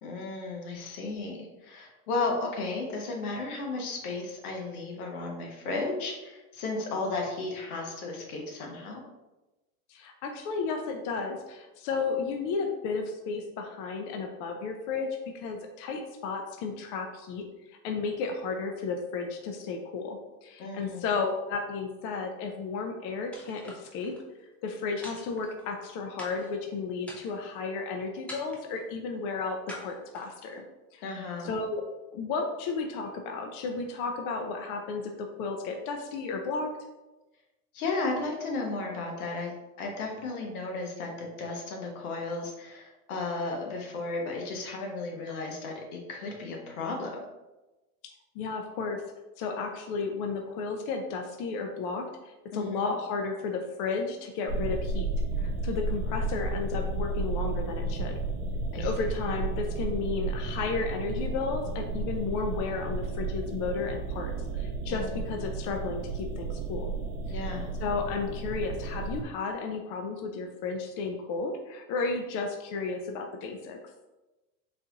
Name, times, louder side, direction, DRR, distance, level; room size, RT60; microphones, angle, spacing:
voice 1, 0.0-9.0 20.6-21.0 31.0-31.5 37.7-39.5 39.8-47.1 52.5-52.9 58.7-58.9 64.9-65.2 67.3-67.7, left 3 dB, 80° left, 1 dB, 1.0 m, -34 dB
voice 2, 9.9-17.5 17.8-24.2 24.6-30.6 30.9-31.1 31.4-31.8 32.1-36.7 48.4-49.0 49.4-55.1 55.4-58.2 58.7-66.9 67.8-73.8, left 4 dB, 50° left, 3 dB, 0.5 m, -33 dB
sound 1, 23.3-24.2 25.0-25.8 26.2-26.6 27.0-27.6 28.3-28.8 29.7-30.6, left 1 dB, 5° left, 0.6 m, -45 dB
sound 2, 54.5-69.2, right 3 dB, 50° right, 0.5 m, -32 dB
4.0 x 2.4 x 2.8 m, 1.1 s
supercardioid pair, 110°, 43 cm